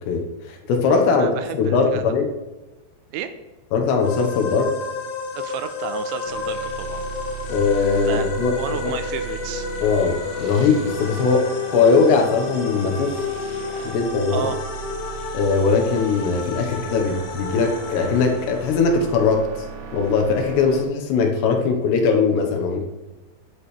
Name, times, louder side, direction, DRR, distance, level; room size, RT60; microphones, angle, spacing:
voice 1, 0.0-2.3 3.7-4.7 7.5-8.9 9.8-11.5 11.7-13.2 13.8-14.5 15.3-19.4 19.9-22.9, left 4 dB, 75° left, 2 dB, 3.2 m, -20 dB
voice 2, 1.1-2.1 3.1-3.3 5.3-7.0 8.1-8.3 8.6-9.7 14.3-14.6, right 9 dB, 90° right, 9 dB, 3.0 m, -31 dB
sound 1, 4.0-19.4, left 5 dB, 90° left, 3.8 m, -31 dB
sound 2, 6.2-20.8, right 6 dB, 65° right, 2.7 m, -37 dB
11.0 x 10.5 x 3.2 m, 1.1 s
omnidirectional pair, 5.3 m